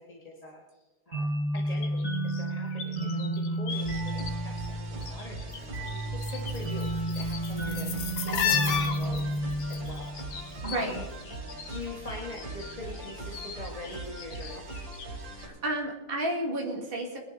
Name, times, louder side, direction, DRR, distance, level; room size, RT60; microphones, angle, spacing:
voice 1, 0.0-6.9 7.1-7.9 8.2-9.2 9.5-10.1 10.6-11.0 11.7-14.6, left 2 dB, 20° left, -2 dB, 1.6 m, -43 dB
sound 1, 1.1-10.5, right 1 dB, 50° right, 6.2 m, -32 dB
sound 2, 1.6-4.3 4.6-5.6 5.8-11.8 12.1-15.1 15.4-15.5, left 7 dB, 65° left, 1.8 m, -35 dB
sound 3, 3.7-15.5, right 2 dB, 70° right, 3.4 m, -41 dB
voice 2, 10.6-11.0 15.4-17.2, right 1 dB, 30° right, 0 dB, 2.1 m, -31 dB
22.0 x 11.0 x 3.9 m, 1.1 s
omnidirectional pair, 2.1 m